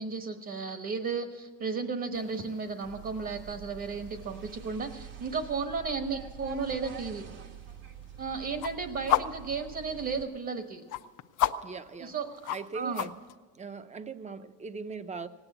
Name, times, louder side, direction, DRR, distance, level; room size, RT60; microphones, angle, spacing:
voice 1, 0.0-7.2 8.2-10.8 12.0-13.1, right 5 dB, 40° right, 6 dB, 1.2 m, -34 dB
sound 1, 2.1-13.4, left 12 dB, 65° left, 0.7 m, -37 dB
sound 2, 2.8-10.2, right 8 dB, 70° right, 1.6 m, -46 dB
voice 2, 11.6-12.1 12.5-13.1 13.5-15.3, right 4 dB, 20° right, 11 dB, 0.7 m, -40 dB
18.0 x 9.0 x 8.2 m, 1.3 s
cardioid pair, 135°, 34 cm